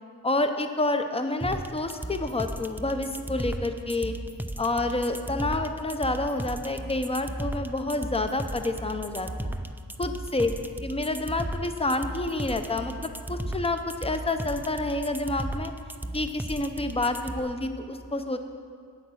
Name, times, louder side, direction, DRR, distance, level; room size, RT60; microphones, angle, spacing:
voice 1, 0.2-4.1 4.6-9.5 10.0-10.5 10.8-15.7 16.1-18.4, left 2 dB, 15° left, 7 dB, 0.7 m, -28 dB
sound 1, 1.4-17.4, right 1 dB, 5° right, 0.4 m, -35 dB
8.5 x 8.4 x 6.3 m, 2.2 s
wide cardioid pair, 105°, 34 cm